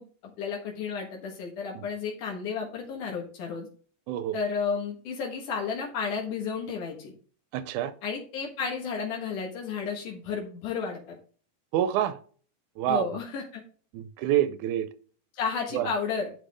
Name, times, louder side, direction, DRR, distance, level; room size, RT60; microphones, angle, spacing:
voice 1, 0.0-3.7 4.3-7.1 8.0-11.2 12.9-13.6 15.4-16.3, left 5 dB, 80° left, -1 dB, 3.1 m, -32 dB
voice 2, 7.5-7.9 11.7-12.2 12.8-13.1 13.9-14.9 15.7-15.9, right 11 dB, 85° right, 12 dB, 2.1 m, -27 dB
10.0 x 5.9 x 3.5 m, 0.42 s
omnidirectional pair, 3.5 m